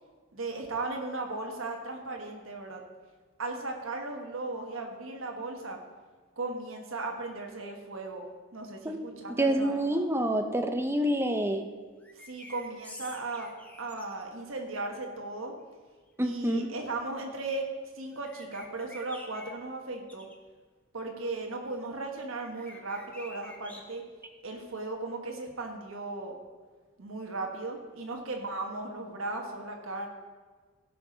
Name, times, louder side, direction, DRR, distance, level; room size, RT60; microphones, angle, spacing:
voice 1, 0.3-2.8 3.4-5.8 6.4-8.2 8.5-9.8 12.1-13.5 13.8-15.5 16.2-17.7 17.9-20.3 20.9-24.0 24.4-26.4 27.0-30.1, right 2 dB, 75° right, 2 dB, 1.4 m, -36 dB
voice 2, 9.4-11.7 16.2-16.7, right 1 dB, 10° right, 6 dB, 0.7 m, -27 dB
sound 1, 12.0-14.2 18.1-19.5 20.1-20.3 22.4-23.8, left 1 dB, 5° left, 1.1 m, -48 dB
17.0 x 5.9 x 5.1 m, 1.5 s
head